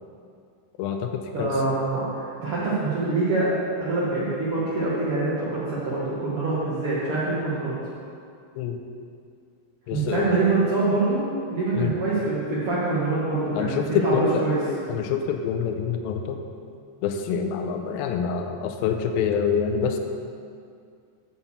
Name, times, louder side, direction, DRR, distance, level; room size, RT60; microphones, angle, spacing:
voice 1, 0.8-1.5 8.6-8.8 9.9-10.4 11.7-12.0 13.6-14.4 14.9-16.4 17.0-20.0, left 6 dB, 85° left, 5 dB, 2.2 m, -26 dB
voice 2, 1.3-3.5 3.8-7.7 9.9-11.2 11.5-14.6, right 3 dB, 70° right, -10 dB, 1.3 m, -25 dB
9.2 x 4.3 x 7.1 m, 2.3 s
omnidirectional pair, 4.8 m